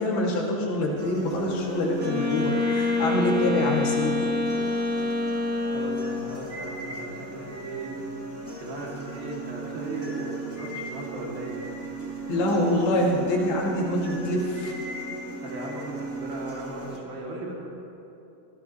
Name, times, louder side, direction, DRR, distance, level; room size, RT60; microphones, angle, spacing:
voice 1, 0.0-4.1 12.3-14.7, left 1 dB, 85° left, -3 dB, 4.3 m, -25 dB
sound 1, 1.0-17.0, right 2 dB, 5° right, 1.1 m, -37 dB
Wind instrument woodwind instrument, 2.0-6.3, left 3 dB, 30° right, 2.5 m, -26 dB
voice 2, 5.7-7.9 8.6-11.6 15.4-17.5, right 2 dB, 75° right, -4 dB, 4.5 m, -37 dB
23.5 x 17.5 x 3.2 m, 2.7 s
omnidirectional pair, 4.3 m